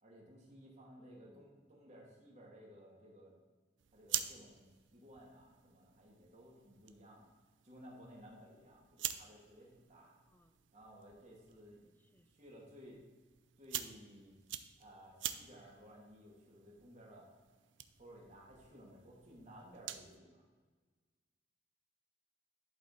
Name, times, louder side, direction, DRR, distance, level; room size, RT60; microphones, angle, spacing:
voice 1, 0.0-3.3 3.9-4.7 4.9-7.3 7.6-10.1 10.7-11.8 12.3-13.0 13.6-14.3 14.8-17.3 18.0-20.4, equal, 40° right, -4 dB, 2.4 m, -57 dB
voice 2, 1.0-1.5 10.3-10.6 11.8-12.3, left 1 dB, 10° left, 10 dB, 0.4 m, -65 dB
sound 1, 3.8-20.2, right 11 dB, 80° right, 0.5 m, -47 dB
11.5 x 5.4 x 4.1 m, 1.4 s
head